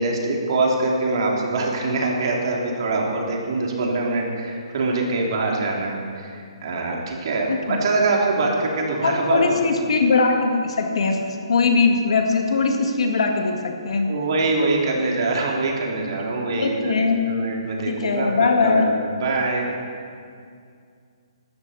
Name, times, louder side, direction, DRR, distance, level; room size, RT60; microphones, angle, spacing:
voice 1, 0.0-9.6 14.1-19.7, right 3 dB, 55° right, -1 dB, 2.8 m, -24 dB
voice 2, 7.5-7.8 9.0-14.1 16.6-17.3 17.9-18.9, left 4 dB, 75° left, 3 dB, 1.9 m, -21 dB
16.5 x 12.5 x 4.1 m, 2.3 s
hypercardioid pair, 160°, 3 cm